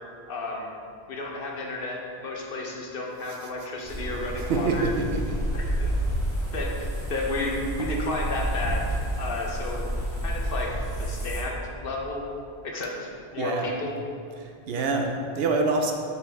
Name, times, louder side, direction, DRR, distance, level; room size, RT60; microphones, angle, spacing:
voice 1, 0.3-0.7 1.1-4.9 5.5-5.9 6.5-9.9 10.2-10.7 11.0-12.2 12.6-13.9, left 2 dB, 60° left, -1 dB, 1.0 m, -32 dB
sound 1, 3.8-11.4, right 1 dB, 5° left, 1.1 m, -30 dB
voice 2, 4.5-5.4 13.4-13.7 14.4-15.9, right 3 dB, 70° right, 3 dB, 0.8 m, -26 dB
6.8 x 4.6 x 3.4 m, 2.5 s
omnidirectional pair, 1.1 m